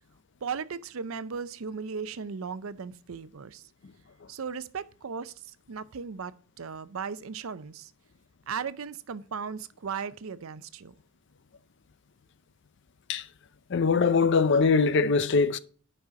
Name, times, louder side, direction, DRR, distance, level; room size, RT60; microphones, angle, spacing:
voice 1, 0.4-3.7 4.3-7.9 8.5-10.9, right 6 dB, 85° right, 0.6 m, -37 dB
voice 2, 13.7-15.6, left 4 dB, 60° left, 0.5 m, -22 dB
8.9 x 5.4 x 4.7 m
head